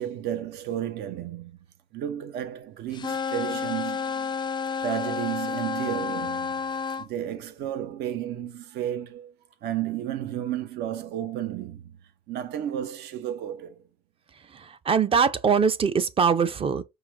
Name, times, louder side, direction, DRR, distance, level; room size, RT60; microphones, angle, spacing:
voice 1, 0.0-1.6 1.9-4.3 4.8-6.5 7.0-9.3 9.6-12.0 12.3-13.8, right 11 dB, 80° right, 0.8 m, -32 dB
sound 1, 2.9-7.1, left 5 dB, 25° left, 0.4 m, -30 dB
voice 2, 14.5-16.8, right 6 dB, 35° right, 0.5 m, -22 dB
4.8 x 2.2 x 3.5 m
cardioid pair, 110°, 17 cm